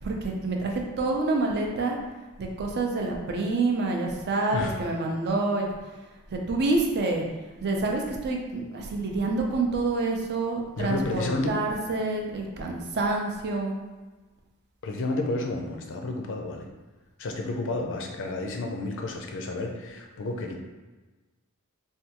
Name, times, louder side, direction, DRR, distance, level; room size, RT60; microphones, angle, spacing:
voice 1, 0.0-2.0 2.4-5.7 6.3-7.2 7.6-13.7, right 3 dB, 50° right, 1 dB, 0.5 m, -27 dB
voice 2, 10.8-11.5 14.8-16.7 17.2-20.6, left 2 dB, 60° left, 2 dB, 0.5 m, -31 dB
3.3 x 2.3 x 2.9 m, 1.2 s
head